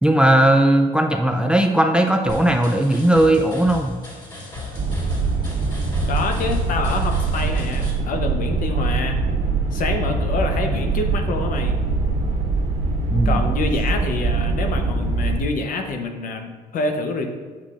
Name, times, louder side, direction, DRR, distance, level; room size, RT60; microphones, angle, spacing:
voice 1, 0.0-4.0 13.1-13.4, right 1 dB, 5° right, 4 dB, 0.4 m, -17 dB
sound 1, 2.3-7.9, left 3 dB, 25° left, 1.9 m, -36 dB
sound 2, 4.7-15.4, right 3 dB, 80° right, 1.4 m, -23 dB
voice 2, 6.1-9.2 9.7-11.8 13.2-17.3, left 3 dB, 55° left, 5 dB, 0.9 m, -26 dB
8.8 x 5.6 x 2.5 m, 1.5 s
cardioid pair, 110°, 17 cm